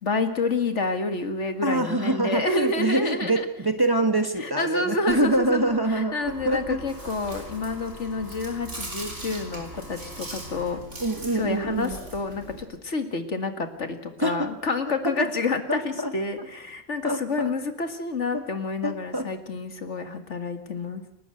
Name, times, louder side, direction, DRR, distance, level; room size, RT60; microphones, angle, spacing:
voice 1, 0.0-3.5 4.4-10.8 11.3-21.0, left 3 dB, 75° left, 7 dB, 2.3 m, -29 dB
voice 2, 1.6-6.8 11.0-12.0 14.2-14.5 15.0-15.3 15.7-16.1 16.4-16.5 17.0-17.5 18.3-18.4 18.8-19.3, right 1 dB, 20° right, 6 dB, 1.6 m, -25 dB
sound 1, 5.1-10.8, left 2 dB, 30° left, 2.6 m, -48 dB
Chewing mastication, 6.3-12.6, right 2 dB, 80° right, 4.1 m, -40 dB
29.0 x 12.5 x 7.9 m, 0.81 s
omnidirectional pair, 1.2 m